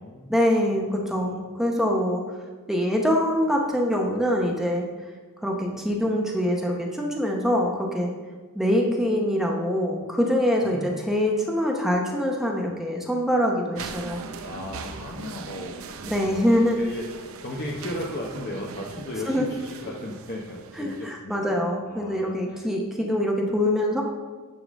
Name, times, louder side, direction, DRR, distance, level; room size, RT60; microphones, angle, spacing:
voice 1, 0.3-2.2 2.7-4.9 5.4-8.1 8.5-14.2 16.0-16.8 19.3-19.5 20.7-24.0, equal, ahead, -1 dB, 0.8 m, -24 dB
voice 2, 1.0-1.5 10.7-11.0 14.4-16.3 16.6-22.7, left 1 dB, 45° left, -2 dB, 0.8 m, -36 dB
sound 1, 13.8-21.1, right 4 dB, 70° right, 0.6 m, -40 dB
9.8 x 3.8 x 6.3 m, 1.4 s
head